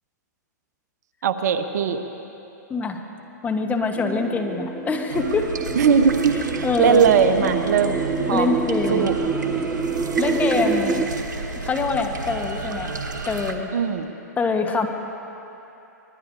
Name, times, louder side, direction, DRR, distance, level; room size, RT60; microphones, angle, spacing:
voice 1, 1.2-2.0 5.7-8.0 8.3-8.6 8.9-9.1 13.7-14.1, right 7 dB, 65° right, 8 dB, 1.0 m, -19 dB
voice 2, 2.7-3.0 3.4-5.5 6.6-7.1 8.3-9.1 10.1-10.9 11.6-13.0 13.3-13.7 14.4-14.9, left 4 dB, 15° left, 4 dB, 1.3 m, -24 dB
sound 1, 4.0-11.1, right 4 dB, 10° right, 0.6 m, -27 dB
sound 2, 5.1-13.5, right 3 dB, 90° right, 1.3 m, -31 dB
25.0 x 20.0 x 2.7 m, 3.0 s
hypercardioid pair, 120°, 10 cm